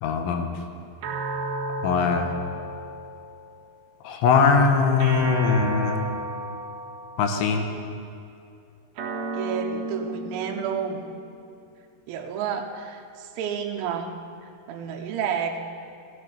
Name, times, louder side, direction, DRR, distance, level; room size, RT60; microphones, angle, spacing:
voice 1, 0.0-0.5 1.8-2.3 4.0-6.0 7.2-7.7, left 5 dB, 75° left, 5 dB, 3.3 m, -21 dB
sound 1, 1.0-3.6 5.0-7.5 9.0-11.6, right 2 dB, 60° right, 2.8 m, -33 dB
voice 2, 9.3-11.0 12.1-14.1 14.7-15.6, right 7 dB, 85° right, 3 dB, 3.7 m, -30 dB
14.5 x 12.0 x 6.8 m, 2.5 s
omnidirectional pair, 6.0 m